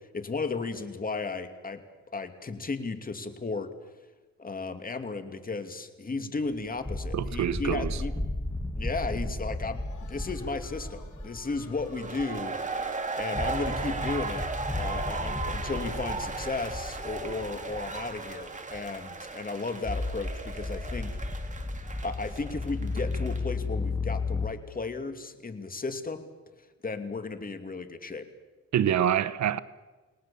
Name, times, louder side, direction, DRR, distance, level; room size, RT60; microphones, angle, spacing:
voice 1, 0.1-1.8 2.1-3.7 4.4-8.1 8.8-12.6 13.2-14.5 14.7-21.1 22.0-26.3 26.8-28.3, left 3 dB, 30° left, 2.6 m, -34 dB
sound 1, 6.6-12.8 13.2-18.4 18.7-18.9 19.8-24.5, left 2 dB, 5° left, 1.6 m, -34 dB
voice 2, 7.1-8.0 28.7-29.6, right 9 dB, 65° right, 1.0 m, -26 dB
sound 2, 9.7-14.6, left 6 dB, 75° left, 5.8 m, -54 dB
sound 3, 11.9-23.5, right 3 dB, 25° right, 3.1 m, -36 dB
29.0 x 19.0 x 7.2 m
cardioid pair, 90°, 30 cm